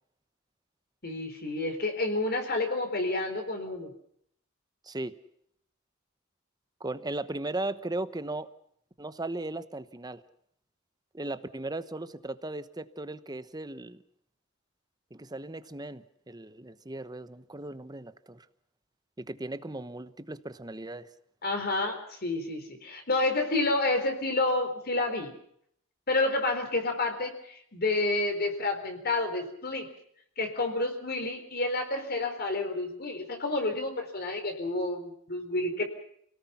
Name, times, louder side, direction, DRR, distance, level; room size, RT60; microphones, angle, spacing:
voice 1, 1.0-3.9 21.4-25.3 26.1-29.9 30.4-35.8, left 2 dB, 50° left, 6 dB, 4.1 m, -29 dB
voice 2, 4.8-5.1 6.8-8.5 9.0-10.2 11.1-14.0 15.1-18.5 19.2-21.1, right 2 dB, 20° right, 13 dB, 1.0 m, -37 dB
29.0 x 18.0 x 5.7 m, 0.69 s
head